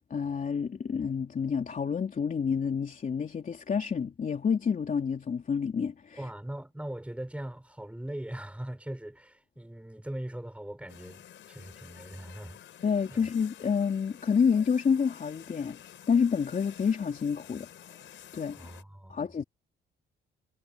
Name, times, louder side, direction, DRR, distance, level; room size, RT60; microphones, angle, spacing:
voice 1, 0.1-6.2 12.8-18.0 18.3-18.7 19.1-19.4, left 6 dB, 40° left, 3.2 m, -28 dB
voice 2, 6.2-12.6 13.1-13.3 18.5-19.3, right 1 dB, 5° right, 6.0 m, -40 dB
sound 1, 10.9-18.8, left 11 dB, 70° left, 5.5 m, -51 dB
cardioid pair, 90°, 20 cm